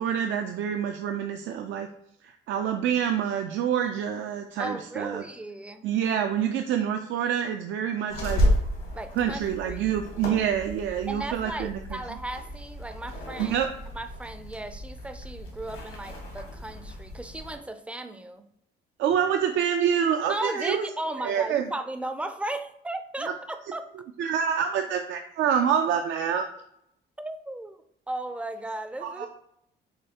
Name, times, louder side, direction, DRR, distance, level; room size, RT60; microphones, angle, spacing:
voice 1, 0.0-1.9 2.2-5.2 5.8-8.4 9.2-11.8 13.4-13.7 19.0-20.9 21.2-21.7 24.2-26.5 29.0-29.3, right 8 dB, 75° right, 5 dB, 0.4 m, -27 dB
voice 2, 4.6-5.9 8.9-9.8 11.1-13.6 13.9-18.4 20.3-23.9 27.2-27.8 28.1-29.3, right 1 dB, 5° right, 9 dB, 0.4 m, -36 dB
sound 1, 8.1-17.6, equal, 85° left, 1.5 m, -32 dB
6.6 x 2.3 x 2.8 m, 0.74 s
cardioid pair, 90°, 20 cm